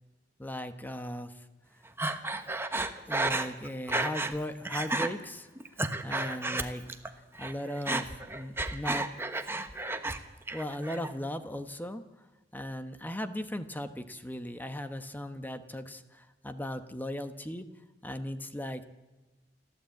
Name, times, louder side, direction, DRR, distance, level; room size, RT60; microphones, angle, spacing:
voice 1, 0.4-1.4 3.1-5.5 6.0-6.8 7.4-9.1 10.5-12.0 12.5-17.7 18.0-18.8, left 1 dB, 10° left, 9 dB, 1.1 m, -37 dB
Breathing, 2.0-4.4 4.7-5.1 5.6-7.1 7.4-10.2 10.5-11.1, right 2 dB, 15° right, 1.2 m, -32 dB
29.0 x 12.0 x 8.4 m, 1.2 s
head